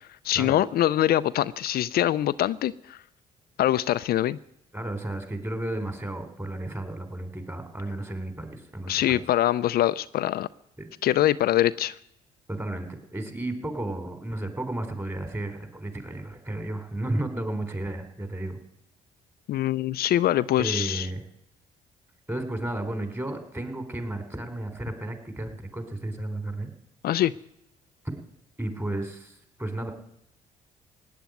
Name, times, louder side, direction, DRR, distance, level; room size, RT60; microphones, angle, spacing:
voice 1, 0.2-3.0 3.6-4.4 8.9-10.5 11.0-11.9 19.5-21.1 27.0-27.3, left 13 dB, 65° left, 14 dB, 0.5 m, -23 dB
voice 2, 4.7-9.2 10.8-10.9 12.5-18.6 20.6-21.2 22.3-26.7 28.0-28.2 28.6-29.9, right 1 dB, 15° right, 7 dB, 3.8 m, -33 dB
16.5 x 9.5 x 9.2 m, 0.77 s
supercardioid pair, 60°, 17 cm